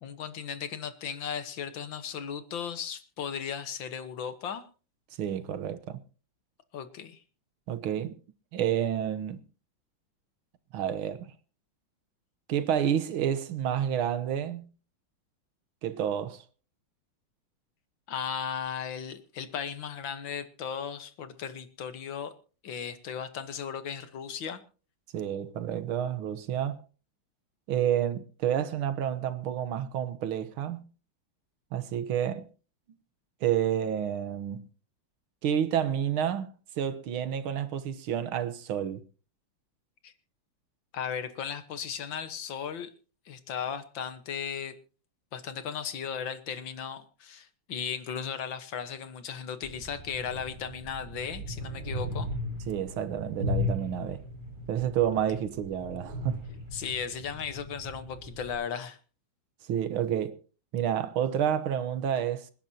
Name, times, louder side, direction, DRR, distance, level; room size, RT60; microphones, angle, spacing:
voice 1, 0.0-4.6 6.7-7.2 18.1-22.3 22.6-24.6 40.0-40.1 40.9-42.9 43.3-44.8 45.3-52.3 56.7-59.0, left 7 dB, 70° left, 2.0 m, -36 dB
voice 2, 5.2-6.0 7.7-8.2 8.5-9.4 10.7-11.3 12.5-14.7 15.8-16.4 25.1-26.8 27.7-30.9 31.7-32.4 33.4-34.7 35.4-39.0 52.7-54.2 54.7-56.4 59.7-60.4 60.7-62.5, right 9 dB, 85° right, 1.9 m, -29 dB
sound 1, 49.6-58.5, left 2 dB, 50° right, 7.9 m, -37 dB
27.0 x 10.5 x 2.8 m
omnidirectional pair, 2.2 m